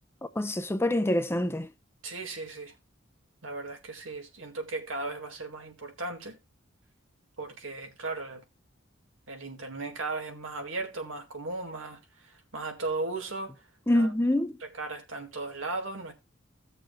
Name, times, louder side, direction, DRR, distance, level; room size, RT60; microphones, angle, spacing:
voice 1, 0.4-1.7 13.9-14.6, left 1 dB, 15° left, 0.5 m, -26 dB
voice 2, 2.0-2.7 3.4-6.4 7.4-8.4 9.3-13.6 13.9-14.1 14.8-16.1, right 3 dB, 90° right, 1.9 m, -36 dB
16.5 x 6.7 x 2.2 m
head